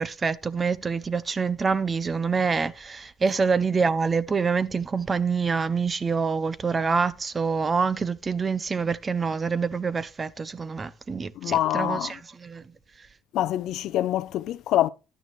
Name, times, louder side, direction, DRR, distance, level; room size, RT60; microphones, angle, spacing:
voice 1, 0.0-12.6, right 5 dB, 20° right, 0.4 m, -26 dB
voice 2, 11.4-12.2 13.3-14.9, left 13 dB, 50° left, 0.5 m, -25 dB
11.0 x 9.0 x 3.1 m
cardioid pair, 165°, 0 cm